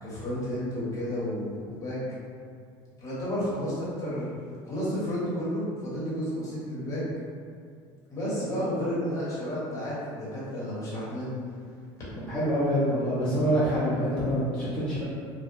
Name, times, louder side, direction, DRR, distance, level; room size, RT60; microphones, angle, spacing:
voice 1, 0.0-2.0 3.0-4.3 4.7-7.0 8.1-11.4, equal, 30° left, -8 dB, 0.9 m, -31 dB
voice 2, 12.3-15.0, equal, 10° left, -13 dB, 0.6 m, -26 dB
2.7 x 2.0 x 2.5 m, 2.2 s
cardioid pair, 135°, 11 cm